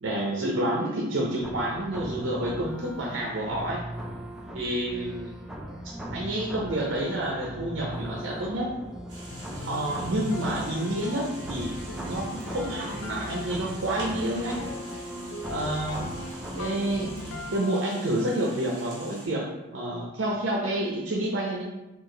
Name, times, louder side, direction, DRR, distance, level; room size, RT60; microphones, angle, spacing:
voice 1, 0.0-3.8 4.5-5.3 5.8-8.7 9.7-11.8 12.0-14.7 15.5-16.0 16.6-21.6, right 1 dB, 75° right, -3 dB, 0.7 m, -29 dB
sound 1, 1.4-17.4, equal, 5° right, 0.4 m, -38 dB
sound 2, 9.1-19.3, right 1 dB, 20° right, 1.3 m, -46 dB
sound 3, 9.3-18.5, left 3 dB, 80° left, 0.4 m, -41 dB
4.7 x 2.5 x 3.8 m, 0.98 s
head